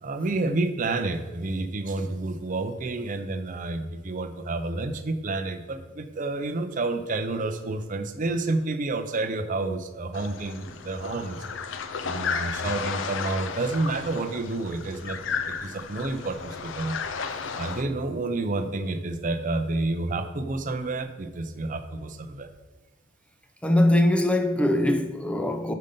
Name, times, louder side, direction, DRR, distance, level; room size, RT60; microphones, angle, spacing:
voice 1, 0.0-11.4 12.0-17.0 17.5-22.5, right 2 dB, 40° right, 0.5 m, -29 dB
sound 1, 10.1-17.8, left 6 dB, 70° left, 0.5 m, -33 dB
voice 2, 23.6-25.7, left 1 dB, 5° left, 0.5 m, -22 dB
5.5 x 5.2 x 5.3 m
head